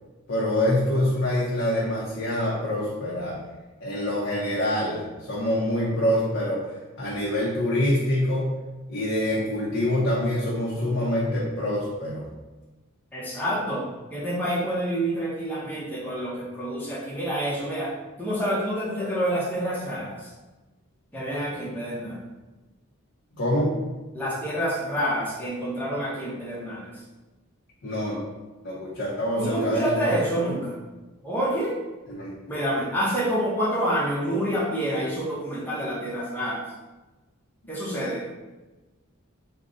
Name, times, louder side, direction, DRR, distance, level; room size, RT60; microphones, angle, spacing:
voice 1, 0.3-3.4 3.8-6.6 7.0-8.5 8.9-12.2 23.3-23.7 27.8-28.2 28.6-30.1 32.1-32.3, left 1 dB, 55° left, -7 dB, 0.7 m, -25 dB
voice 2, 13.1-17.9 18.2-20.2 21.1-22.2 24.1-26.9 29.4-30.8 31.2-31.7 32.5-36.6 37.7-38.2, equal, 10° left, -7 dB, 0.8 m, -27 dB
3.7 x 2.2 x 3.7 m, 1.2 s
head